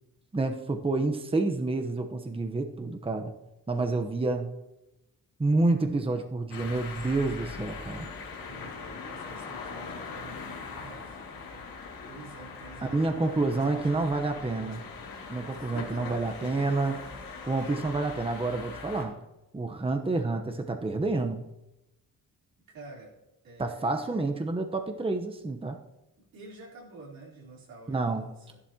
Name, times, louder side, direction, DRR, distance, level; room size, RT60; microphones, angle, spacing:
voice 1, 0.3-3.3 3.7-4.5 5.4-8.1 12.8-14.8 15.3-16.9 17.5-19.1 19.5-21.4 23.6-25.8 27.9-28.3, right 3 dB, 15° right, 5 dB, 1.0 m, -28 dB
sound 1, 6.5-19.0, left 4 dB, 85° left, 2.2 m, -41 dB
voice 2, 8.5-11.7 12.0-16.5 16.9-17.3 17.6-17.9 22.7-23.1 23.4-24.2 26.2-28.6, right 2 dB, 85° right, -4 dB, 3.7 m, -48 dB
12.5 x 11.0 x 2.9 m, 0.95 s
cardioid pair, 80°, 34 cm